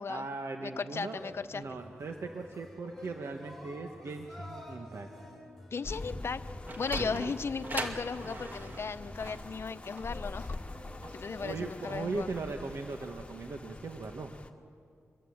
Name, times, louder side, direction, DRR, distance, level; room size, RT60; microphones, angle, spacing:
voice 1, 0.1-1.2 1.5-5.1 7.0-7.3 11.0-11.1 11.4-14.3, right 3 dB, 65° right, 4 dB, 1.5 m, -39 dB
voice 2, 0.6-1.6 5.7-6.4 6.8-10.6 11.1-12.3, left 5 dB, 55° left, 12 dB, 0.9 m, -36 dB
sound 1, 1.0-12.9, left 1 dB, ahead, 7.6 m, -50 dB
sound 2, 5.8-14.5, left 2 dB, 25° left, 1.8 m, -45 dB
Sliding door, 6.4-11.5, right 2 dB, 35° right, 2.3 m, -41 dB
25.0 x 22.5 x 8.7 m, 2.3 s
wide cardioid pair, 90°, 5 cm